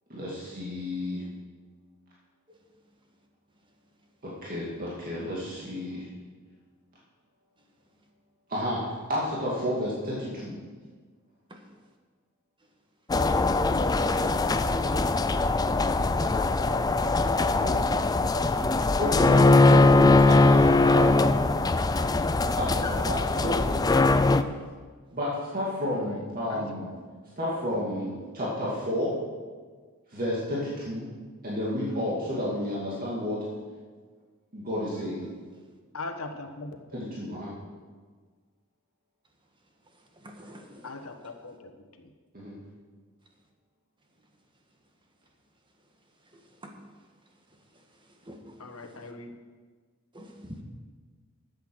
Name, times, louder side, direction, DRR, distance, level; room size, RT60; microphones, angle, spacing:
voice 1, 0.1-1.2 4.2-6.1 8.5-10.6 17.5-17.8 18.7-21.1 22.6-23.6 25.1-26.9 27.4-29.1 30.1-31.1 31.4-33.4 34.5-35.2 36.9-37.5 42.3-42.6, left 1 dB, 45° right, -6 dB, 2.4 m, -31 dB
sound 1, 13.1-24.4, left 2 dB, 20° left, 0.4 m, -21 dB
voice 2, 16.3-17.3 25.9-26.1 26.5-27.0 35.9-36.7 37.2-37.3 40.8-41.7 42.0-42.1 48.6-49.3, left 3 dB, 80° left, 5 dB, 1.3 m, -41 dB
voice 3, 40.2-40.9 46.3-46.7 48.2-48.4 48.8-48.9 50.1-50.6, equal, 25° right, 2 dB, 1.5 m, -46 dB
12.5 x 8.1 x 6.3 m, 1.5 s
head